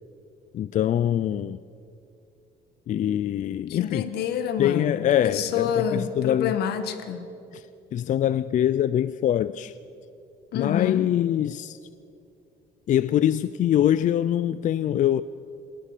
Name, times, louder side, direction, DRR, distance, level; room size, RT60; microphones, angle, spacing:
voice 1, 0.5-1.6 2.9-4.1 4.6-6.5 7.5-7.7 7.9-9.7 10.5-11.8 12.9-15.2, left 11 dB, 50° left, 0.4 m, -24 dB
voice 2, 3.7-7.3 10.5-11.1, left 8 dB, 75° left, 1.6 m, -28 dB
28.0 x 17.5 x 6.7 m
cardioid pair, 110°, 17 cm